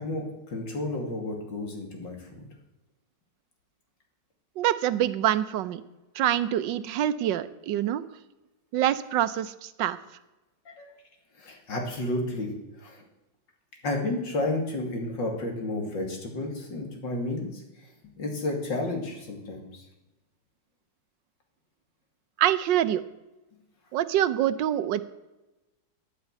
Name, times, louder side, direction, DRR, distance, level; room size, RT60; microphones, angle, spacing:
voice 1, 0.0-2.5 10.6-10.9 11.4-12.5 12.8-13.0 13.8-17.6 18.2-19.8, left 2 dB, 80° left, 2 dB, 3.4 m, -31 dB
voice 2, 4.6-5.8 6.1-8.0 8.7-10.0 22.4-23.0 23.9-25.0, right 11 dB, 80° right, 15 dB, 1.4 m, -25 dB
10.0 x 9.6 x 9.2 m, 1.0 s
omnidirectional pair, 2.0 m